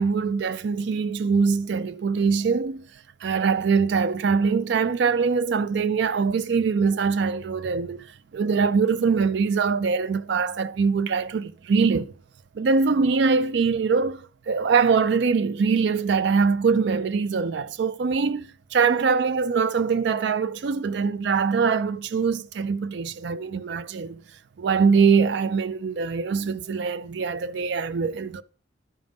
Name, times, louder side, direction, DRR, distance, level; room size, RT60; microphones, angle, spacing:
voice 1, 0.0-2.9 3.2-8.0 8.3-12.1 12.5-24.2 24.6-28.4, right 5 dB, 70° right, 0.4 m, -23 dB
12.0 x 5.2 x 3.5 m
head